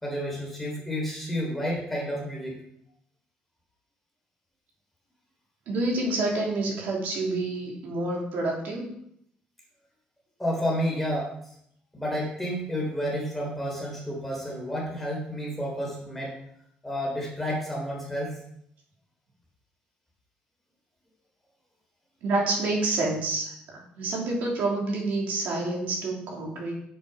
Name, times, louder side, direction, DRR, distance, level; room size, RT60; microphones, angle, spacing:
voice 1, 0.0-2.5 10.4-11.3 11.9-16.3 16.8-18.3, equal, 5° left, -3 dB, 3.2 m, -30 dB
voice 2, 5.7-8.9 22.2-26.8, right 2 dB, 65° right, -2 dB, 2.8 m, -28 dB
7.3 x 6.9 x 5.6 m, 0.71 s
cardioid pair, 165°, 3 cm